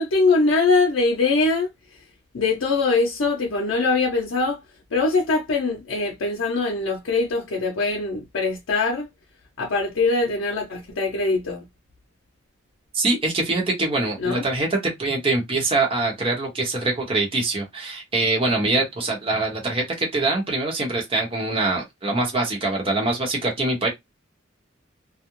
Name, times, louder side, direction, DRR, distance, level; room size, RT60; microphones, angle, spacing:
voice 1, 0.0-1.7 2.3-4.6 4.9-9.1 9.6-11.6 14.2-14.4, left 3 dB, 85° left, 0.6 m, -22 dB
voice 2, 12.9-23.9, right 2 dB, 30° right, 0.8 m, -24 dB
2.3 x 2.0 x 2.9 m
head